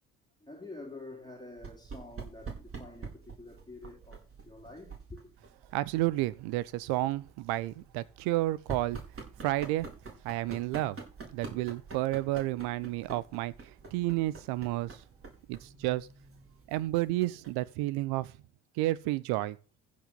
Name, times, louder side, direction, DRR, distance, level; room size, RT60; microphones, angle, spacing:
voice 1, 0.4-5.3, left 2 dB, 10° left, 3.4 m, -48 dB
sound 1, 1.6-17.7, right 4 dB, 30° right, 5.1 m, -47 dB
voice 2, 5.7-9.0 9.4-9.9 10.2-11.0 11.3-15.0 15.5-16.1 16.7-18.3 18.8-19.6, right 17 dB, 65° right, 1.0 m, -31 dB
15.0 x 5.4 x 6.9 m
hypercardioid pair, 55°, 41 cm